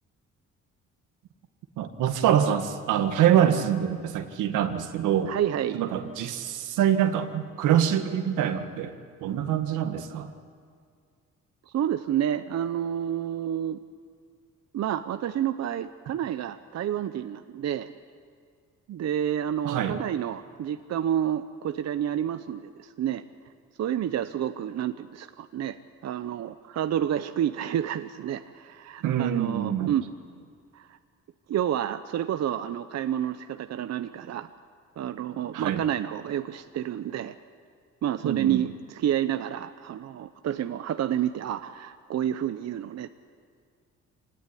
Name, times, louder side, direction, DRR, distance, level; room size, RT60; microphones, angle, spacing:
voice 1, 1.8-5.3 5.7-8.9 9.2-10.3 19.6-20.0 29.0-29.9 35.5-35.8 38.2-38.6, right 10 dB, 90° right, 7 dB, 1.8 m, -25 dB
voice 2, 5.3-5.8 11.7-13.8 14.7-17.9 18.9-23.2 23.8-25.8 26.0-30.1 30.7-31.0 31.5-34.5 35.0-37.3 38.0-43.1, right 10 dB, 60° right, 10 dB, 0.8 m, -29 dB
25.5 x 18.0 x 9.9 m, 2.1 s
cardioid pair, 90°, 30 cm